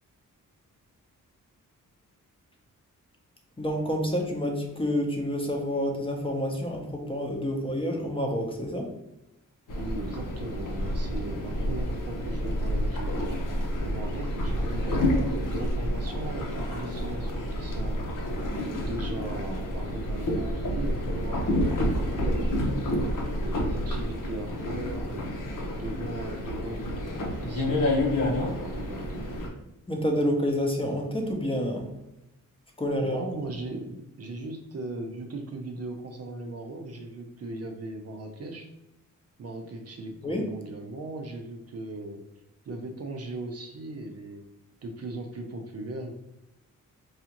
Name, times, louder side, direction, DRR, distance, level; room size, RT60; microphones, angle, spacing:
voice 1, 3.6-8.9 29.9-31.9 32.8-33.2 40.2-40.5, equal, 15° left, 1 dB, 0.7 m, -28 dB
sound 1, 9.7-29.5, left 1 dB, 70° left, 1.0 m, -29 dB
voice 2, 9.7-13.3 13.8-18.1 18.8-22.8 23.4-25.3 25.7-29.3 33.0-38.7 39.4-42.2 42.7-44.4 44.8-46.1, right 2 dB, 50° right, 4 dB, 0.5 m, -38 dB
4.8 x 2.4 x 2.9 m, 0.91 s
wide cardioid pair, 115°, 33 cm